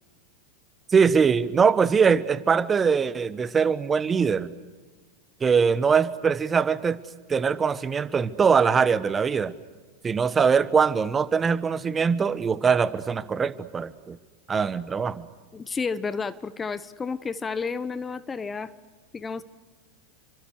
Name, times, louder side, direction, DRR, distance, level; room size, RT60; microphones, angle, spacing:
voice 1, 0.9-4.5 5.4-7.0 7.3-9.5 10.0-14.2 14.5-15.2, right 6 dB, 20° right, 16 dB, 1.2 m, -22 dB
voice 2, 15.5-18.7 19.1-19.4, left 5 dB, 20° left, 16 dB, 1.0 m, -31 dB
29.5 x 25.0 x 6.5 m, 1.4 s
figure-of-eight pair, 90°, 0 cm